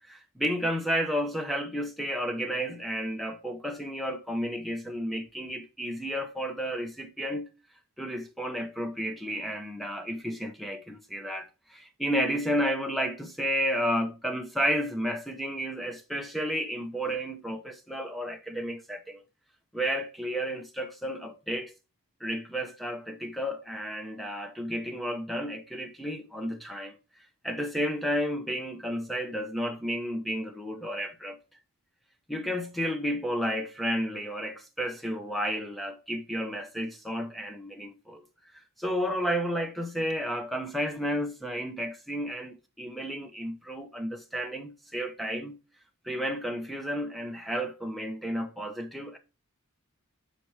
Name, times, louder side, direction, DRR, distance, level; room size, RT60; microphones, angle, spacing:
voice 1, 0.1-7.5 8.0-19.2 19.7-21.7 22.2-27.0 27.4-31.4 32.3-38.2 38.8-45.6 46.0-49.2, equal, ahead, 0.8 m, -32 dB
6.1 x 4.2 x 4.7 m
head